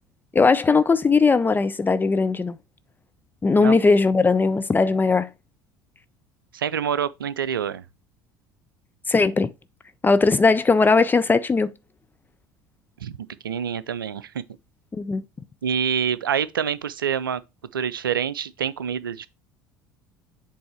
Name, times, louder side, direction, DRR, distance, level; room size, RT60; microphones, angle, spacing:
voice 1, 0.3-2.6 3.4-5.3 9.1-9.5 10.0-11.7 14.9-15.2, left 4 dB, 15° left, 0.4 m, -19 dB
voice 2, 6.5-7.8 13.0-13.2 13.4-14.4 15.6-17.4 17.7-19.3, right 8 dB, 80° right, 0.4 m, -26 dB
7.7 x 3.4 x 4.4 m
figure-of-eight pair, 65°, 11 cm